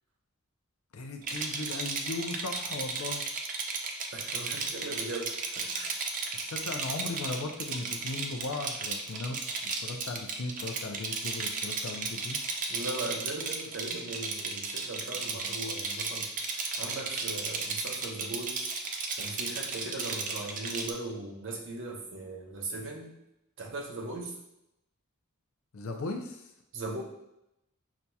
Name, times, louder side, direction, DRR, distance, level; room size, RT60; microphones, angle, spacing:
voice 1, 0.9-3.2 6.3-12.4 25.7-26.4, left 2 dB, 65° left, 4 dB, 0.6 m, -37 dB
Rattle, 1.2-20.9, right 4 dB, 35° right, 0.4 m, -34 dB
voice 2, 4.1-5.9 12.7-18.7 19.2-23.2 23.6-24.4 26.7-27.0, right 2 dB, 60° right, 0 dB, 0.8 m, -39 dB
6.0 x 2.7 x 2.2 m, 0.84 s
head